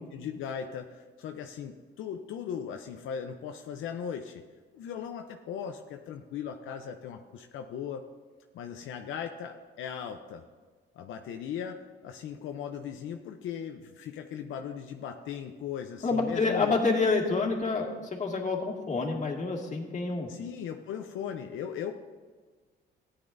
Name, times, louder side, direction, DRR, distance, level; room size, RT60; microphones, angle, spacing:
voice 1, 0.0-4.4 4.7-8.0 8.5-10.4 10.9-16.8 20.3-21.9, left 8 dB, 80° left, 4 dB, 0.7 m, -38 dB
voice 2, 16.0-20.3, left 3 dB, 40° left, 0 dB, 2.1 m, -28 dB
14.5 x 9.9 x 2.6 m, 1.5 s
cardioid pair, 90°, 20 cm